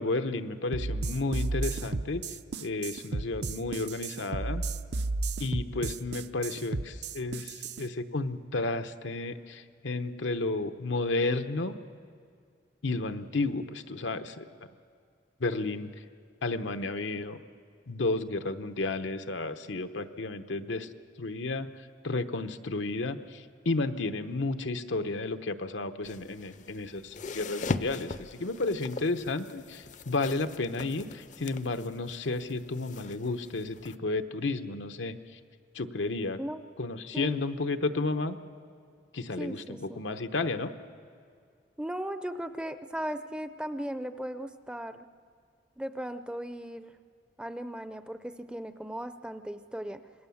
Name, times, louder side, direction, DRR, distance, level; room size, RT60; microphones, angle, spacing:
voice 1, 0.0-2.2 2.6-4.6 5.4-11.8 12.8-14.5 15.4-15.9 16.4-17.4 17.9-20.9 21.2-21.7 22.0-35.4 35.7-36.4 36.8-38.4 39.1-40.7, left 3 dB, 90° left, 8 dB, 0.9 m, -32 dB
sound 1, 0.7-7.8, right 3 dB, 65° right, 0.6 m, -33 dB
sound 2, 26.0-34.0, left 3 dB, 40° left, 0.5 m, -40 dB
voice 2, 39.4-40.0 41.8-45.1 45.8-47.0 47.4-50.0, right 1 dB, 5° right, 10 dB, 0.5 m, -37 dB
26.5 x 19.0 x 7.1 m, 2.2 s
head